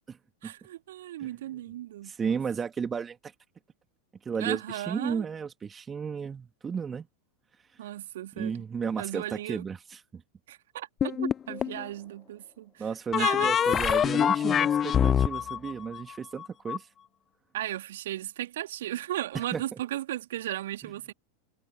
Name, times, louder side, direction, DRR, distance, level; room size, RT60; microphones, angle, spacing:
voice 1, 0.4-2.4 4.4-5.3 7.8-8.6 9.0-9.6 10.5-12.8 13.2-13.5 17.5-21.1, right 13 dB, 55° right, 3.3 m, -36 dB
voice 2, 2.0-3.3 4.2-7.1 8.3-10.2 12.8-16.9 19.3-19.6 20.8-20.9, right 6 dB, 20° right, 2.9 m, -33 dB
sound 1, 11.0-11.8 13.1-16.8, left 8 dB, 25° left, 0.8 m, -25 dB
figure-of-eight pair, 90°, 0 cm